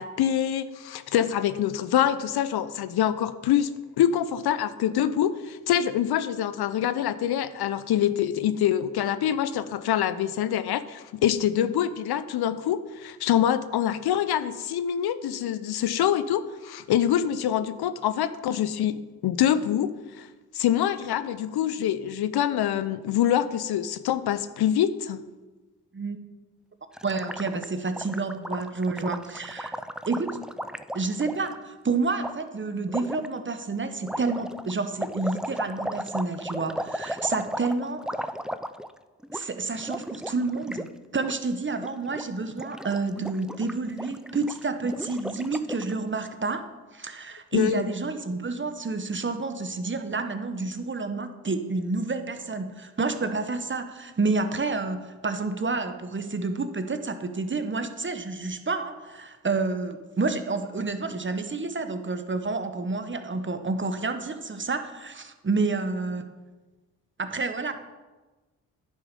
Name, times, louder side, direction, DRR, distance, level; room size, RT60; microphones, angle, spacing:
voice 1, 0.0-20.3 20.5-25.2 47.5-47.8, left 10 dB, 65° left, 13 dB, 0.6 m, -25 dB
Gurgling, 26.9-31.6 32.2-32.3 32.9-33.3 34.0-39.0 39.2-39.4 39.7-40.9 41.1-41.3 41.7-42.2 42.5-45.9, equal, ahead, 0.4 m, -35 dB
voice 2, 27.0-29.7 30.1-30.4 30.9-38.3 39.3-46.6 46.9-66.2 67.2-67.7, right 3 dB, 30° right, 9 dB, 1.0 m, -29 dB
10.5 x 5.0 x 5.2 m, 1.2 s
hypercardioid pair, 40°, 42 cm